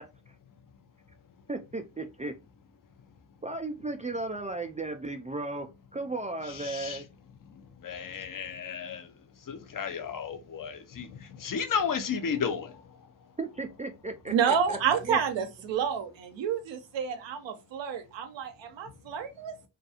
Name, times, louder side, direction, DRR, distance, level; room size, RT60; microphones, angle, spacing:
voice 1, 1.5-2.3 3.4-7.0 13.4-14.3 14.7-14.8 15.1-15.2, right 2 dB, 15° right, 0.3 m, -35 dB
voice 2, 6.4-7.0 7.8-9.1 9.5-12.8, left 6 dB, 45° left, 0.7 m, -33 dB
voice 3, 14.3-19.6, right 7 dB, 70° right, 0.6 m, -29 dB
2.5 x 2.3 x 2.6 m
supercardioid pair, 55°, 47 cm